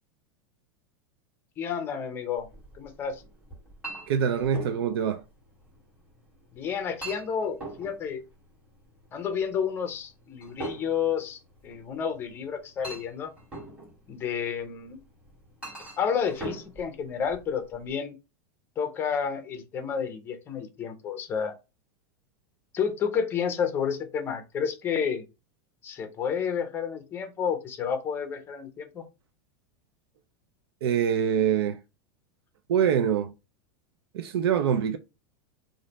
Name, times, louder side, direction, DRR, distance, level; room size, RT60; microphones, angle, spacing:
voice 1, 1.6-2.5 2.7-3.2 6.5-8.2 9.1-13.3 14.1-15.0 16.0-18.2 18.8-21.5 22.7-25.2 25.8-29.0, left 7 dB, 15° left, 0.6 m, -30 dB
Chink clink, 2.4-17.9, right 2 dB, 10° right, 1.7 m, -44 dB
voice 2, 4.1-5.2 30.8-31.8 32.7-33.3 34.1-35.0, right 8 dB, 85° right, 0.4 m, -24 dB
3.1 x 2.5 x 4.0 m
supercardioid pair, 165°, 13 cm